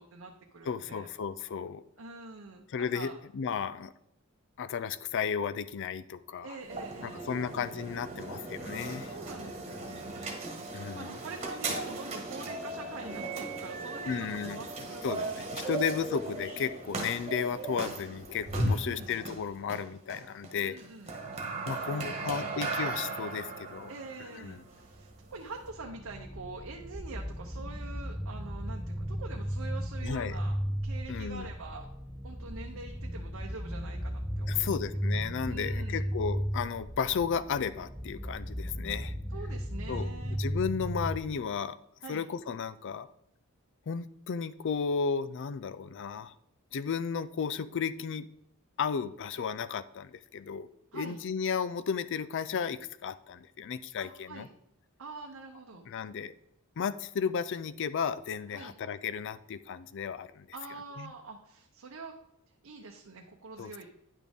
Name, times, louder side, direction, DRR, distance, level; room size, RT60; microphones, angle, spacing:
voice 1, 0.0-1.1 2.0-3.2 6.4-7.3 9.1-15.8 18.6-19.1 20.6-21.2 21.7-22.6 23.9-30.6 30.8-31.9 32.2-34.8 35.4-36.0 39.3-40.4 42.0-42.2 50.9-51.2 54.0-54.5 55.0-55.8 58.5-58.7 60.5-62.1 62.6-63.9, right 3 dB, 65° right, 1 dB, 0.8 m, -45 dB
voice 2, 0.7-1.8 2.7-3.9 4.6-6.6 7.0-9.1 10.7-11.1 14.1-14.6 15.0-20.8 21.7-23.9 24.2-24.6 30.0-30.3 31.1-31.5 34.5-39.1 39.9-40.1 40.4-41.8 42.1-43.1 43.9-46.3 46.7-48.3 48.8-54.5 55.9-56.3 56.8-60.5 61.0-61.1 63.6-63.9, left 6 dB, 55° left, 15 dB, 0.4 m, -34 dB
sound 1, 6.6-25.7, right 2 dB, 30° right, 1.5 m, -37 dB
sound 2, 24.8-41.2, equal, ahead, 0.7 m, -36 dB
9.9 x 6.2 x 3.5 m, 0.78 s
head